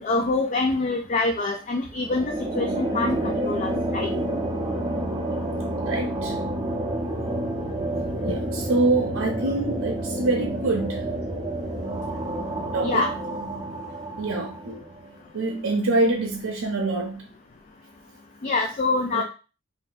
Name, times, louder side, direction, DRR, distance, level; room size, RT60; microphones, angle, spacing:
voice 1, 0.0-4.1 12.8-13.1 18.4-19.2, left 3 dB, 35° left, 0.3 m, -25 dB
sound 1, 2.0-15.1, right 1 dB, 20° right, 0.6 m, -29 dB
voice 2, 5.8-6.4 8.2-11.1 12.7-13.1 14.2-14.8 15.3-17.2 19.1-19.2, right 2 dB, 75° right, 0.6 m, -25 dB
2.7 x 2.6 x 3.9 m
head